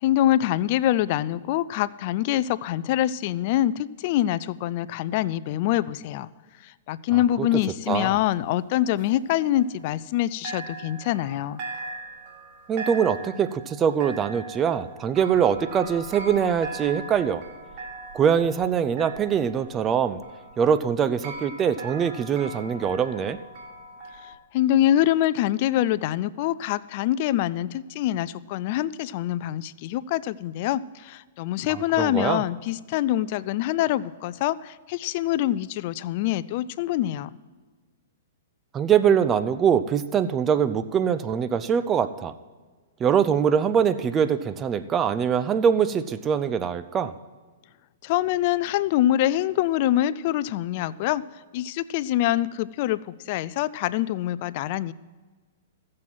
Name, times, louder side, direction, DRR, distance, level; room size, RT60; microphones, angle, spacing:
voice 1, 0.0-6.3 6.6-11.6 24.5-37.3 48.0-51.2 51.5-54.9, left 13 dB, 50° left, 19 dB, 0.4 m, -25 dB
voice 2, 7.1-7.5 7.9-8.2 12.7-17.4 18.1-20.2 20.6-23.4 31.7-32.4 38.7-42.3 43.0-47.1, right 7 dB, 20° right, 12 dB, 0.6 m, -23 dB
sound 1, 8.3-10.2 10.4-24.3, right 3 dB, 45° right, 2.1 m, -40 dB
14.5 x 7.5 x 6.1 m, 1.4 s
hypercardioid pair, 130°, 0 cm